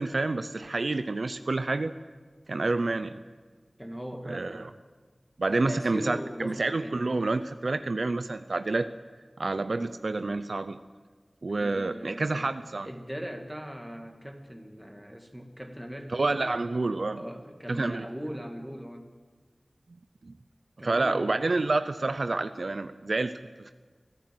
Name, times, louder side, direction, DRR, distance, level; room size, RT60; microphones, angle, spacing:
voice 1, 0.0-1.9 2.5-3.2 4.3-4.7 5.4-8.9 9.4-10.8 11.4-12.9 16.1-17.2 17.7-18.0 20.3-20.4 20.8-23.7, right 3 dB, 80° right, 10 dB, 0.7 m, -28 dB
voice 2, 3.8-4.8 5.5-7.0 7.7-8.0 11.5-12.5 12.8-16.6 17.1-19.1 20.8-21.6, equal, 5° right, 3 dB, 2.4 m, -40 dB
24.0 x 15.0 x 7.9 m, 1.4 s
wide cardioid pair, 45°, 0 cm